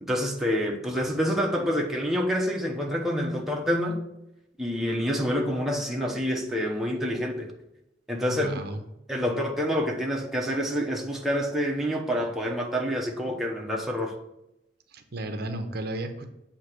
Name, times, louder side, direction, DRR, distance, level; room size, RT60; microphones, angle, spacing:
voice 1, 0.0-4.0 4.6-7.5 8.1-8.6 9.1-14.1, equal, ahead, 0.8 m, -27 dB
voice 2, 8.3-8.8 14.9-16.3, right 1 dB, 60° right, 0.7 m, -34 dB
8.1 x 2.9 x 6.0 m
head